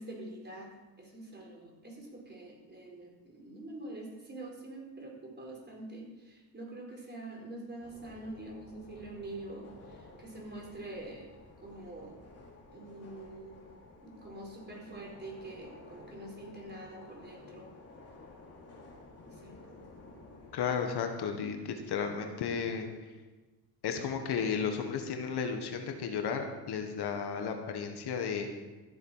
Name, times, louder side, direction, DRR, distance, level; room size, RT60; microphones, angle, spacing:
voice 1, 0.0-11.3 11.6-12.2 12.7-13.7 14.0-17.7 19.3-19.6, right 2 dB, 25° right, -1 dB, 4.8 m, -45 dB
sound 1, 7.8-20.7, left 2 dB, 35° left, 3.5 m, -53 dB
voice 2, 20.5-23.1 23.8-28.5, left 6 dB, 65° left, 5 dB, 1.7 m, -34 dB
14.0 x 7.7 x 5.8 m, 1.2 s
supercardioid pair, 85°, 43 cm